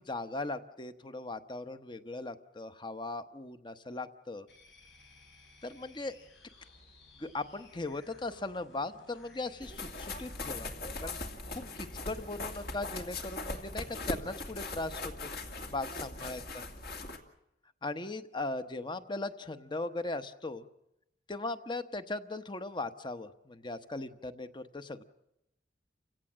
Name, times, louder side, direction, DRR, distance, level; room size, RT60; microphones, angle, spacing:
voice 1, 0.0-4.5 5.6-6.1 7.2-10.7 11.0-11.2 11.5-15.3 15.7-16.7 17.8-20.7 21.3-25.0, left 2 dB, 25° left, 10 dB, 1.0 m, -38 dB
sound 1, 4.5-13.1, left 2 dB, 85° left, 6.3 m, -58 dB
sound 2, 9.6-17.2, left 2 dB, 55° left, 2.5 m, -40 dB
29.5 x 17.0 x 7.5 m, 0.87 s
head